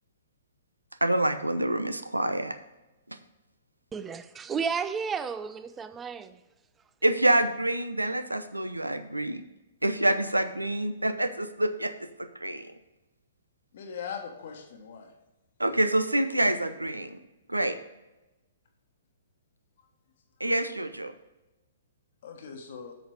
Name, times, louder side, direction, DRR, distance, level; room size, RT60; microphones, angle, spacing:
voice 1, 1.0-2.6 3.1-3.2 7.0-9.4 9.8-12.7 15.6-17.2 17.5-17.7 20.4-21.1, right 1 dB, 85° right, 0.7 m, -27 dB
voice 2, 3.9-6.3, right 6 dB, 15° right, 0.5 m, -32 dB
voice 3, 13.7-15.1 20.4-20.5 22.2-22.9, left 7 dB, 50° left, 1.3 m, -40 dB
7.9 x 6.5 x 5.1 m
figure-of-eight pair, 120°, 0 cm